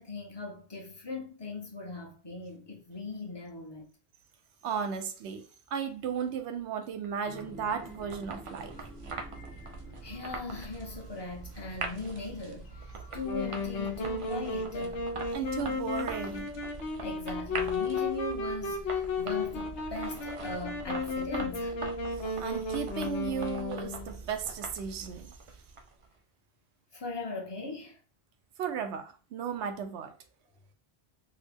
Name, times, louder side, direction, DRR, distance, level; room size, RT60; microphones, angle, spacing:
voice 1, 0.0-3.9 10.0-12.7 13.1-15.0 17.0-21.7 26.9-28.0, left 3 dB, 30° left, 0.7 m, -39 dB
voice 2, 4.6-5.4 5.7-8.8 15.3-16.5 22.4-25.3 28.6-30.1, right 7 dB, 85° right, 0.9 m, -35 dB
sound 1, 7.0-26.1, right 3 dB, 50° right, 0.4 m, -43 dB
sound 2, 7.2-14.2, left 2 dB, 50° left, 1.1 m, -52 dB
Wind instrument woodwind instrument, 13.2-24.1, left 3 dB, 85° left, 1.0 m, -34 dB
3.6 x 2.1 x 3.3 m
omnidirectional pair, 1.1 m